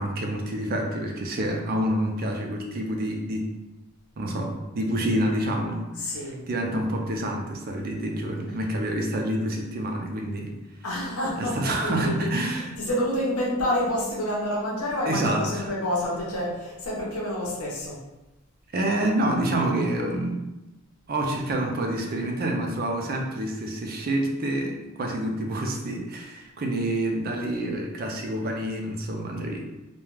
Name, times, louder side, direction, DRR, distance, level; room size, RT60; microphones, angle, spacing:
voice 1, 0.0-3.5 4.2-10.5 11.4-12.7 15.1-15.7 18.7-20.4 21.1-29.6, right 1 dB, 40° right, 1 dB, 0.4 m, -28 dB
voice 2, 5.9-6.5 10.8-18.0, left 1 dB, 85° left, -4 dB, 0.8 m, -28 dB
2.3 x 2.2 x 3.1 m, 0.99 s
head